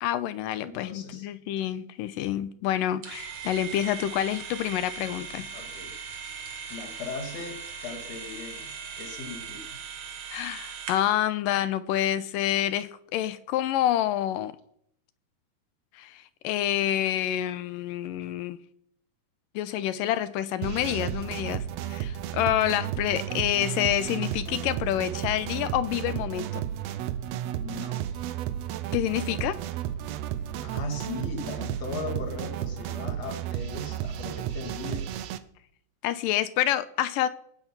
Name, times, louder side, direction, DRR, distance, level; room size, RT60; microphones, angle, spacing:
voice 1, 0.0-5.5 10.3-14.6 16.0-18.6 19.6-26.6 28.9-29.6 36.0-37.3, left 12 dB, 85° left, 2.4 m, -28 dB
voice 2, 0.6-1.3 5.5-5.9 6.3-6.4 6.7-9.8 27.5-28.3 30.6-35.2, left 3 dB, 55° left, 3.1 m, -38 dB
sound 1, 3.0-11.2, right 6 dB, 55° right, 2.7 m, -39 dB
sound 2, 20.6-35.4, right 11 dB, 80° right, 1.5 m, -33 dB
20.0 x 9.1 x 5.8 m
omnidirectional pair, 3.8 m